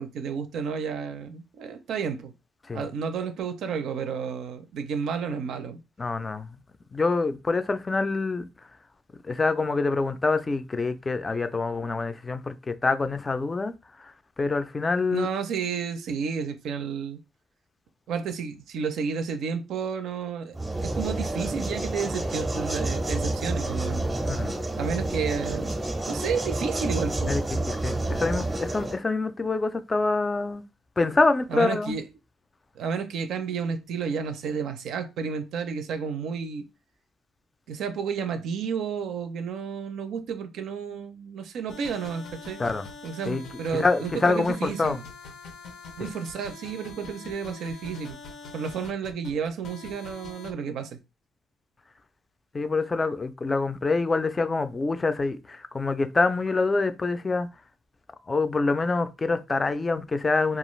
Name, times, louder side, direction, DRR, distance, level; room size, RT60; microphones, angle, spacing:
voice 1, 0.0-2.3 2.7-5.8 15.1-17.2 18.1-24.1 24.8-25.8 26.1-27.3 31.5-32.0 32.8-36.7 37.7-42.6 43.0-45.0 46.0-48.2 48.5-50.9, right 6 dB, 80° right, 0.5 m, -31 dB
voice 2, 6.0-6.5 6.9-8.4 9.3-13.7 14.4-15.3 24.2-24.6 27.3-30.6 31.0-32.0 42.6-42.8 43.3-43.4 43.7-45.0 46.0-46.1 52.5-57.5 58.3-60.6, left 3 dB, 25° left, 0.3 m, -26 dB
sound 1, 20.5-29.0, right 2 dB, 15° right, 0.6 m, -29 dB
sound 2, 41.7-50.5, left 3 dB, 75° left, 0.5 m, -43 dB
2.4 x 2.3 x 3.1 m
cardioid pair, 90°, 0 cm